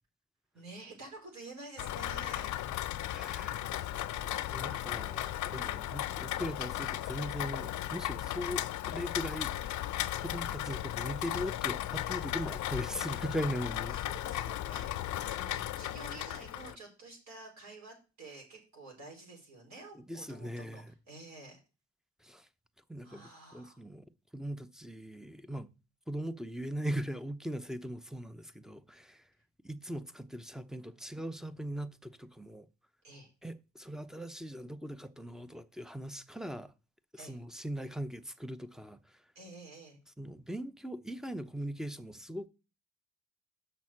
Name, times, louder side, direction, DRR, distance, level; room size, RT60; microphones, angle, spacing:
voice 1, 0.5-2.5 13.9-21.6 23.0-23.8 33.0-33.3 37.2-37.4 39.3-40.0, right 2 dB, 65° right, 4.5 m, -50 dB
Rain, 1.8-16.7, left 13 dB, 75° left, 0.6 m, -36 dB
voice 2, 3.1-9.8 10.1-14.0 15.3-15.5 19.9-20.9 22.2-22.5 22.9-24.0 24.3-25.7 26.1-29.3 29.6-32.7 33.4-36.7 37.1-39.2 40.2-42.5, equal, ahead, 0.7 m, -40 dB
6.4 x 6.2 x 7.4 m
cardioid pair, 90°, 30 cm